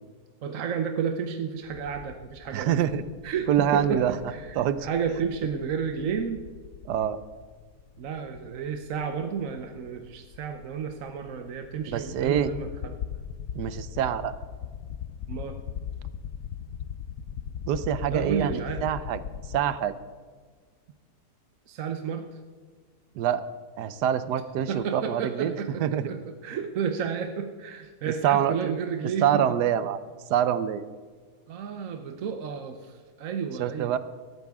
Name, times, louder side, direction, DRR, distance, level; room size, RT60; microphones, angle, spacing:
voice 1, 0.4-2.8 3.2-6.4 8.0-13.0 15.3-15.6 18.1-18.9 21.7-22.3 24.7-29.4 31.5-34.0, right 6 dB, 60° right, 5 dB, 1.1 m, -31 dB
sound 1, 1.7-19.6, left 8 dB, 65° left, 1.0 m, -40 dB
voice 2, 2.5-3.0 3.5-4.2 4.6-4.9 6.9-7.2 11.9-12.5 13.5-14.4 17.7-19.2 19.5-19.9 23.1-23.4 23.8-26.1 28.1-28.7 29.2-30.0 30.3-30.8 33.6-34.0, right 10 dB, 85° right, 14 dB, 1.3 m, -26 dB
18.0 x 13.5 x 3.6 m, 1.5 s
omnidirectional pair, 1.7 m